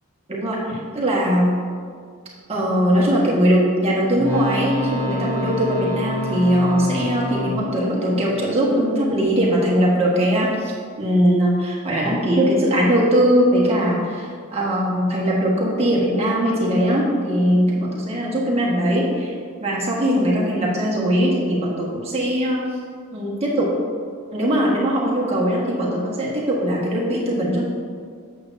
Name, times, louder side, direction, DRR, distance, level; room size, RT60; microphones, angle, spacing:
voice 1, 0.3-1.5 2.5-19.3 19.6-22.6 23.1-23.7 24.3-27.7, equal, 30° right, -5 dB, 1.5 m, -20 dB
sound 1, 4.1-9.2 12.0-12.1, left 1 dB, 10° left, 1.4 m, -28 dB
8.5 x 7.6 x 2.7 m, 2.1 s
head